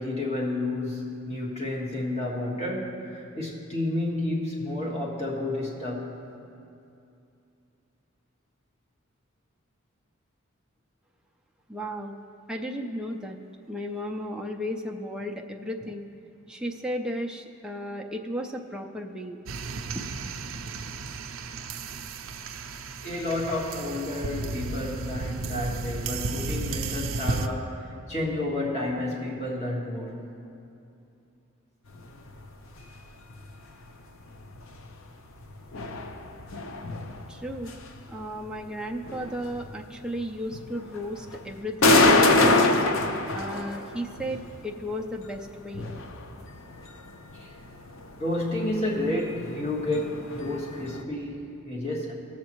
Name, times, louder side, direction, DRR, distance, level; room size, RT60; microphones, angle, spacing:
voice 1, 0.0-6.1 20.6-20.7 23.0-30.2 47.3-47.5 48.2-52.1, left 1 dB, 30° left, -3 dB, 1.5 m, -30 dB
voice 2, 11.7-12.1 12.5-13.4 13.7-16.1 16.5-19.4 19.9-20.0 37.3-37.7 38.1-42.7 43.3-45.9, equal, 5° right, 1 dB, 0.5 m, -34 dB
sound 1, 19.5-27.5, right 4 dB, 80° right, 0.5 m, -34 dB
sound 2, 31.9-51.0, left 2 dB, 75° left, 0.6 m, -28 dB
18.0 x 7.4 x 3.0 m, 2.6 s
head